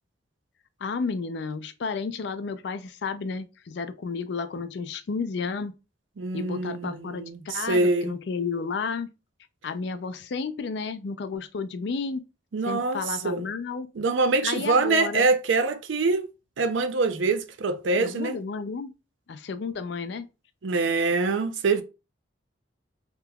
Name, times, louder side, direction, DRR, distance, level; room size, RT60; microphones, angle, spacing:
voice 1, 0.8-5.7 6.3-9.1 9.6-12.2 12.7-13.9 14.4-15.3 18.0-18.9 19.3-20.3, left 4 dB, 65° left, 0.4 m, -32 dB
voice 2, 6.2-8.1 12.5-13.5 14.0-16.3 16.6-18.4 20.6-21.8, right 3 dB, 80° right, 0.5 m, -24 dB
3.5 x 2.9 x 2.2 m
head